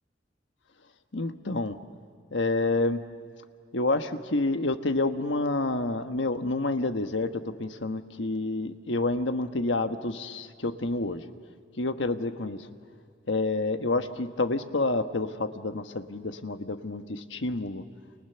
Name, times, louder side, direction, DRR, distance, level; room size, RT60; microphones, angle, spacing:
voice 1, 1.1-1.8 2.3-3.0 3.7-11.2 11.8-12.7 13.3-17.8, left 2 dB, 75° left, 8 dB, 1.3 m, -28 dB
29.5 x 29.5 x 6.9 m, 2.3 s
head